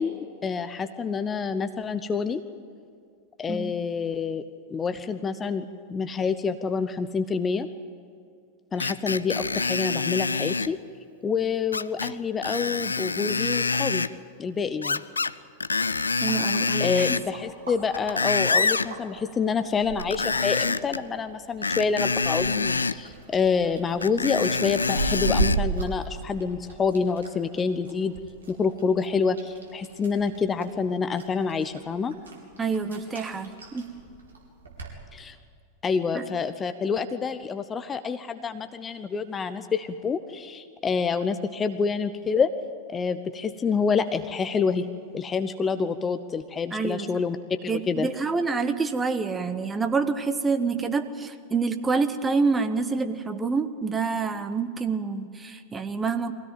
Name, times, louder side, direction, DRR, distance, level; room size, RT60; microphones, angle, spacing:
voice 1, 0.0-2.4 3.4-4.4 4.7-7.7 8.7-10.8 11.2-14.0 14.4-15.0 16.8-28.1 28.5-32.1 35.1-35.4 35.8-42.5 42.9-44.9 45.1-48.1, left 5 dB, 20° left, 10 dB, 0.8 m, -27 dB
Screech, 8.8-10.7 11.7-12.1 12.4-14.1 14.8-15.3 15.6-17.3 17.8-18.9 20.0-21.0 21.6-23.0 24.0-25.6 26.2-26.3, left 4 dB, 75° left, 0.5 m, -26 dB
sound 1, 15.8-34.9, right 3 dB, 70° right, 3.8 m, -37 dB
voice 2, 16.2-17.2 32.6-33.9 36.1-36.3 46.7-47.2 47.6-56.3, right 4 dB, 15° right, 9 dB, 1.3 m, -27 dB
23.0 x 17.0 x 9.2 m, 2.3 s
figure-of-eight pair, 90°, 0 cm